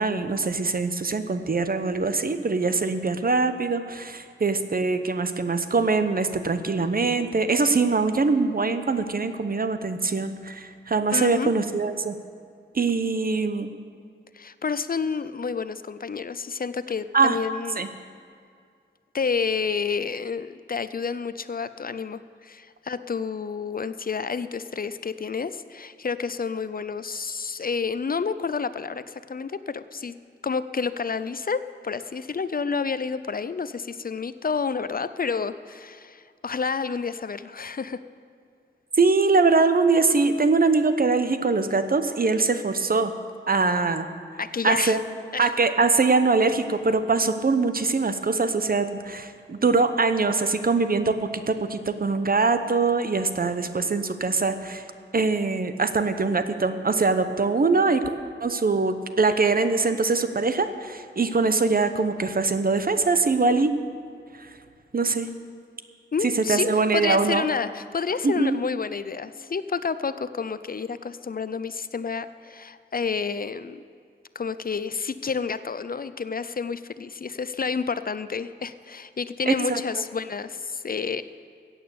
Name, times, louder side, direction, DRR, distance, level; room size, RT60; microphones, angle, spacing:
voice 1, 0.0-12.1 12.7-13.7 17.1-17.4 17.8-17.9 39.0-43.1 43.5-44.1 44.6-45.0 45.4-54.8 55.1-58.0 58.4-63.7 64.9-65.3 66.5-67.4 68.2-68.6 79.5-79.8, right 4 dB, 45° right, 9 dB, 0.8 m, -23 dB
voice 2, 11.1-11.5 14.3-17.8 19.1-30.1 30.4-38.0 44.4-45.0 45.3-45.5 66.1-73.8 74.4-81.2, left 5 dB, 45° left, 14 dB, 0.4 m, -29 dB
15.0 x 8.7 x 6.9 m, 2.3 s
wide cardioid pair, 85°, 20 cm